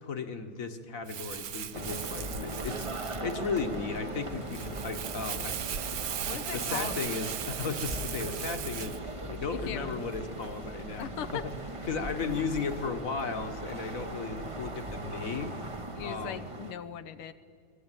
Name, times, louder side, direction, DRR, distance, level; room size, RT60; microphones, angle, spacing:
voice 1, 0.0-2.9 3.2-5.6 6.0-6.2 6.5-8.9 9.3-11.4 11.9-15.5 16.0-16.4, left 5 dB, 45° left, 7 dB, 1.6 m, -35 dB
sound 1, 1.0-14.1, left 3 dB, 60° left, 2.0 m, -57 dB
Crumpling crinkling, 1.1-9.0, right 9 dB, 60° right, 1.0 m, -38 dB
sound 2, 1.7-16.7, right 2 dB, 20° right, 0.9 m, -39 dB
voice 2, 6.2-7.0 9.5-10.0 11.0-11.5 15.9-17.3, left 9 dB, 85° left, 11 dB, 1.7 m, -39 dB
25.0 x 21.5 x 9.1 m, 2.2 s
omnidirectional pair, 2.3 m